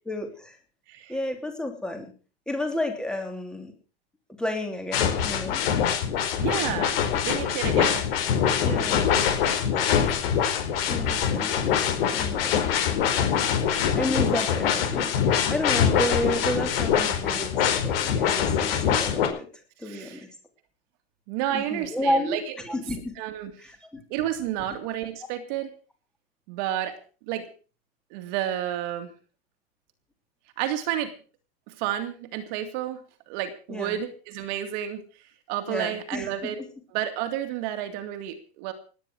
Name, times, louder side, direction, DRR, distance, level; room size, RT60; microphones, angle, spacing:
voice 1, 0.0-0.6 1.1-2.1 2.5-3.7 4.4-5.6 8.6-9.1 10.9-11.7 12.1-12.5 13.4-13.5 13.9-19.5 19.8-20.3 21.5-22.4 22.6-23.1 23.6-24.0 33.7-34.0 35.7-36.7, left 1 dB, ahead, 5 dB, 3.1 m, -31 dB
sound 1, 4.9-19.3, left 8 dB, 60° left, 4.8 m, -24 dB
voice 2, 6.4-7.0 7.2-8.0 8.6-9.1 11.0-11.3 19.8-20.2 21.3-22.4 23.2-23.5 24.1-25.7 26.5-27.0 27.3-27.5 28.1-29.1 30.6-31.1 31.7-33.0 33.3-35.0 35.5-36.6 36.9-38.7, right 11 dB, 45° right, 8 dB, 2.4 m, -31 dB
18.5 x 10.5 x 6.3 m, 0.38 s
supercardioid pair, 150°, 32 cm